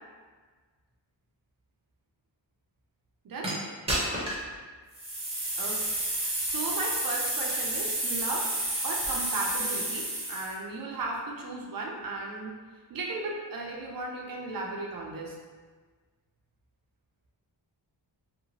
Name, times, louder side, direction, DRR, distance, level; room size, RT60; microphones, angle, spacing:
sound 1, 3.4-3.5 3.9-4.5 4.9-10.5, right 1 dB, 15° right, 0.7 m, -30 dB
voice 1, 6.4-8.5 8.8-12.5 12.9-15.4, right 2 dB, 50° right, -1 dB, 0.5 m, -35 dB
2.8 x 2.1 x 2.7 m, 1.4 s
wide cardioid pair, 120°, 43 cm